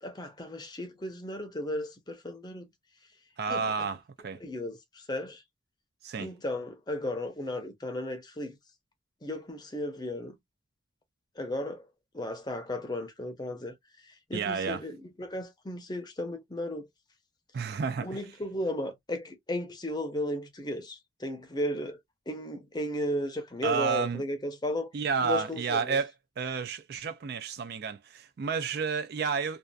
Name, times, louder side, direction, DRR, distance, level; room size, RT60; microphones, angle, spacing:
voice 1, 0.0-2.7 3.5-3.6 4.4-5.4 6.2-8.6 9.2-10.4 11.4-11.8 12.1-13.7 14.3-16.9 18.0-22.0 22.3-24.9 25.2-26.0, left 1 dB, 20° left, 0.6 m, -35 dB
voice 2, 3.4-4.4 6.0-6.3 14.3-14.8 17.5-18.2 23.6-24.2 24.9-29.6, right 5 dB, 50° right, 0.3 m, -31 dB
2.6 x 2.3 x 2.2 m
head